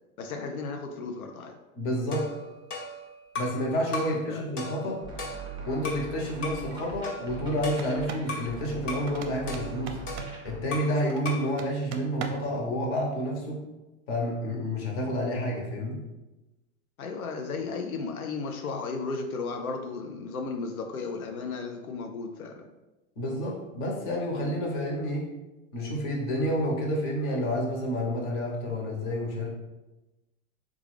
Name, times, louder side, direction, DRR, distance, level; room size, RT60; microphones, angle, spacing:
voice 1, 0.2-1.6 4.3-4.5 17.0-22.6, left 4 dB, 90° left, 3 dB, 0.5 m, -34 dB
voice 2, 1.7-2.3 3.3-5.0 5.7-10.0 10.4-13.6 14.1-16.0 23.2-25.3 25.7-29.5, equal, 30° left, -2 dB, 0.9 m, -29 dB
sound 1, 2.1-3.6 3.9-4.2 4.6-6.1 6.4-6.7 7.0-8.5 8.9-9.1 9.5-11.0 11.2-11.5, left 2 dB, 60° left, 1.2 m, -37 dB
sound 2, 5.0-10.6, right 4 dB, 10° right, 0.7 m, -41 dB
sound 3, 7.7-8.3 9.1-10.4 11.1-12.6, right 5 dB, 60° right, 0.6 m, -39 dB
3.7 x 2.4 x 3.2 m, 1.1 s
hypercardioid pair, 115°, 42 cm